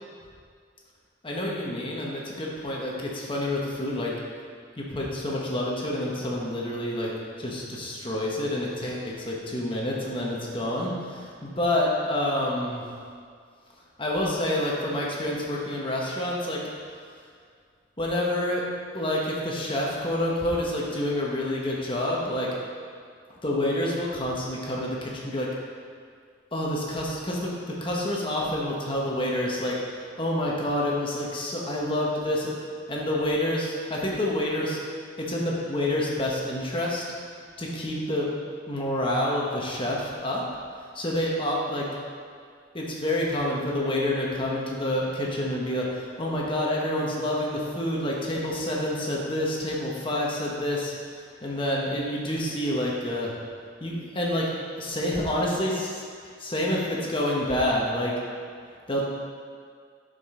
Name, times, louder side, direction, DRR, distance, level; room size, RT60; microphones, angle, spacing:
voice 1, 1.2-4.1 4.8-7.1 7.4-12.8 14.0-16.6 18.0-18.7 18.9-22.5 23.3-25.5 26.5-32.5 32.9-34.8 35.2-37.0 37.6-38.3 38.7-40.4 40.9-41.9 42.7-53.3 53.8-54.5 54.8-58.1 58.9-59.0, left 1 dB, 25° left, -3 dB, 1.3 m, -28 dB
11.0 x 5.3 x 3.8 m, 2.1 s
head